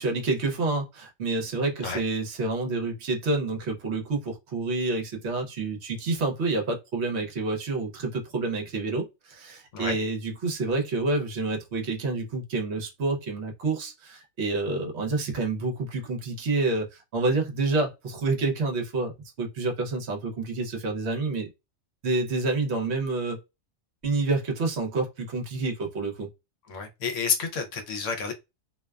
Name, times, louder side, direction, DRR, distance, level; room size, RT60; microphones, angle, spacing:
voice 1, 0.0-19.1 19.4-21.5 22.0-23.4 24.0-26.3, right 3 dB, 60° right, 0.9 m, -28 dB
voice 2, 26.7-28.3, left 6 dB, 70° left, 0.9 m, -29 dB
2.5 x 2.2 x 2.2 m
omnidirectional pair, 1.4 m